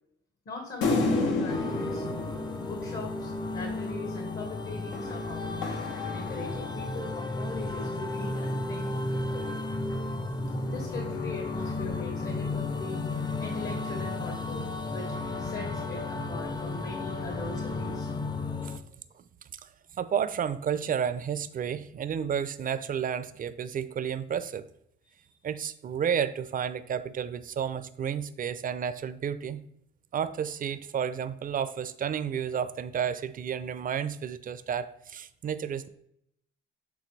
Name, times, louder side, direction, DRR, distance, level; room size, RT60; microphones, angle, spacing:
voice 1, 0.4-5.8 6.1-9.6 10.7-13.1 13.4-14.7 14.9-18.1 25.0-25.4, left 3 dB, 50° left, 2 dB, 1.4 m, -41 dB
sound 1, 0.8-3.5 4.9-7.0, left 3 dB, 80° left, 1.0 m, -31 dB
sound 2, 1.5-18.8, left 2 dB, 20° left, 0.6 m, -33 dB
voice 2, 19.6-24.7 25.4-29.6 30.1-35.9, right 8 dB, 45° right, 14 dB, 0.5 m, -31 dB
8.4 x 3.7 x 3.2 m, 0.73 s
cardioid pair, 90°, 20 cm